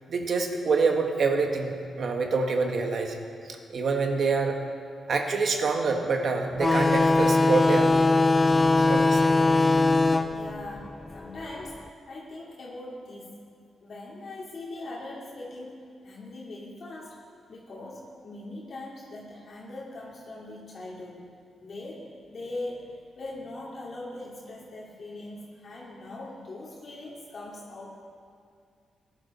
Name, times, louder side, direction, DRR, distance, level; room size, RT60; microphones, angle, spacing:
voice 1, 0.1-3.2 3.5-4.6 5.1-7.9 8.8-9.3, right 4 dB, 60° right, 4 dB, 1.5 m, -26 dB
sound 1, 6.6-11.8, left 3 dB, 20° left, 0.5 m, -22 dB
voice 2, 10.3-13.4 13.8-17.2 17.5-21.2 21.6-28.0, left 2 dB, 50° left, -6 dB, 2.5 m, -41 dB
17.0 x 10.5 x 4.3 m, 2.2 s
cardioid pair, 80°, 0 cm